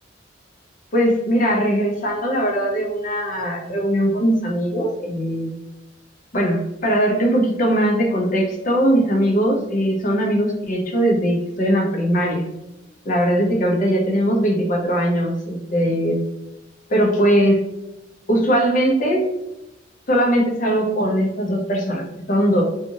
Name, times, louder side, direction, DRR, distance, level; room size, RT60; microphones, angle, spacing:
voice 1, 0.9-5.5 6.3-12.5 13.0-16.2 16.9-17.6 18.3-19.3 20.1-22.6, equal, 45° left, 0 dB, 0.7 m, -20 dB
2.6 x 2.4 x 2.9 m, 0.90 s
head